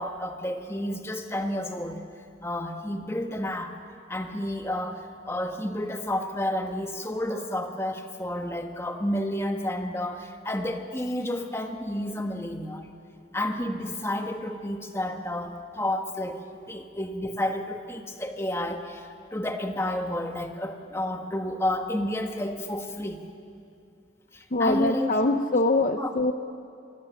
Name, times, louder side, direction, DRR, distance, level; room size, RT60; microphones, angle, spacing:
voice 1, 0.0-2.0 2.4-3.8 4.1-12.9 13.3-23.2 24.3-25.4 26.0-26.1, left 1 dB, 15° left, 5 dB, 1.4 m, -31 dB
voice 2, 24.5-26.3, left 2 dB, 40° left, 7 dB, 0.7 m, -23 dB
25.5 x 22.5 x 7.3 m, 2.4 s
head